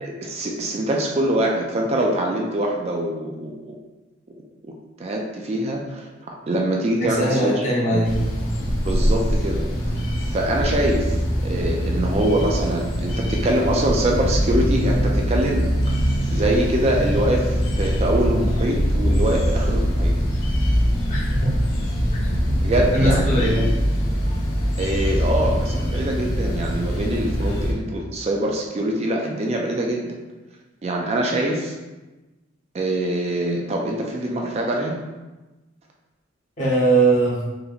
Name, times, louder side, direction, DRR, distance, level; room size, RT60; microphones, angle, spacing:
voice 1, 0.0-3.8 5.0-7.6 7.9-8.1 8.8-10.0 10.3-16.0 16.3-20.2 22.6-23.7 24.8-30.1 30.8-31.7 32.7-35.0, right 1 dB, 30° right, 0 dB, 0.3 m, -24 dB
voice 2, 7.0-8.2 21.1-21.6 22.1-22.6 22.9-23.6 36.6-37.4, right 2 dB, 40° left, -5 dB, 0.9 m, -21 dB
sound 1, 8.0-27.7, equal, 85° left, 0.9 m, -22 dB
3.9 x 2.8 x 2.4 m, 1.1 s
head